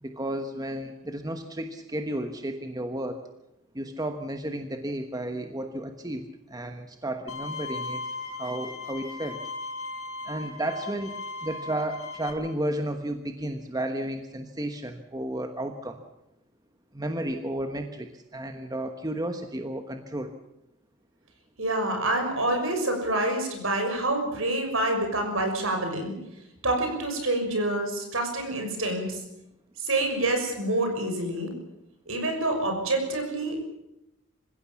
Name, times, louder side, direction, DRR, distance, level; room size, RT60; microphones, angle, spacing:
voice 1, 0.0-3.2 3.7-8.0 8.4-9.4 10.3-16.0 16.9-20.3, right 1 dB, 20° right, 6 dB, 1.2 m, -33 dB
Bowed string instrument, 7.3-12.3, left 3 dB, 80° left, 4.9 m, -37 dB
voice 2, 21.6-26.1 26.6-29.2 29.8-31.5 32.1-33.7, right 2 dB, 70° right, 4 dB, 6.3 m, -27 dB
26.0 x 16.0 x 7.2 m, 0.86 s
head